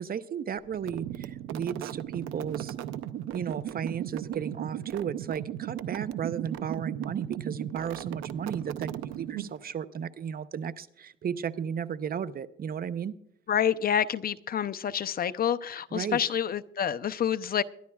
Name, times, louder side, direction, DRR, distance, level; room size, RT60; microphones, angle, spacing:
voice 1, 0.0-2.8 3.3-13.1 15.9-16.2, right 8 dB, 50° right, 14 dB, 0.7 m, -34 dB
sound 1, 0.7-9.7, right 11 dB, 90° right, 0.6 m, -36 dB
voice 2, 13.5-17.6, left 9 dB, 50° left, 14 dB, 0.6 m, -28 dB
22.5 x 11.5 x 2.4 m, 0.71 s
cardioid pair, 90°, 20 cm